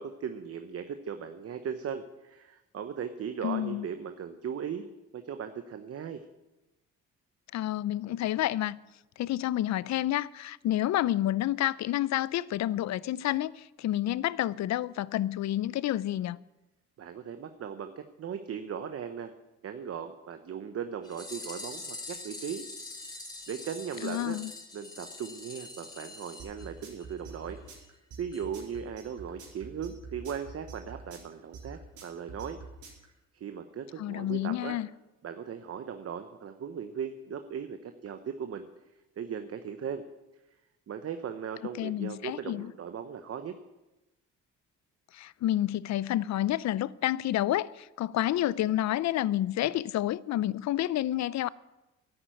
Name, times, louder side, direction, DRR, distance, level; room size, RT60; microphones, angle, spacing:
voice 1, 0.0-4.9 5.1-6.2 17.0-19.3 19.6-22.6 23.5-24.4 24.7-27.6 28.2-32.6 33.3-34.8 35.2-38.7 39.2-40.0 40.9-43.5, right 7 dB, 50° right, 0.9 m, -38 dB
voice 2, 3.4-3.9 7.5-8.8 9.2-16.4 24.0-24.5 34.0-34.9 41.8-42.7 45.1-51.5, left 13 dB, 65° left, 0.5 m, -29 dB
sound 1, 21.0-27.2 27.5-27.6 27.8-27.9 28.3-28.4 28.7-28.8, left 2 dB, 15° left, 4.7 m, -44 dB
sound 2, 26.4-33.0, right 5 dB, 80° right, 3.8 m, -45 dB
11.0 x 8.8 x 9.2 m
cardioid pair, 90°, 30 cm